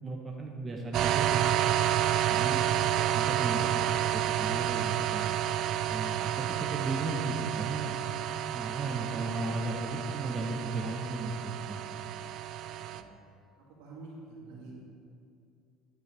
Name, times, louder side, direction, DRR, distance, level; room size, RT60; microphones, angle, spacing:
voice 1, 0.0-1.7 2.3-3.7 4.1-5.3 5.9-8.0 8.5-12.0, right 3 dB, 25° right, 0 dB, 1.0 m, -35 dB
sound 1, 0.9-13.0, right 11 dB, 60° right, 0.3 m, -30 dB
voice 2, 3.6-3.9 12.7-13.0 13.7-14.7, right 3 dB, 75° right, -4 dB, 2.4 m, -48 dB
9.4 x 9.3 x 3.4 m, 2.5 s
hypercardioid pair, 80°, 0 cm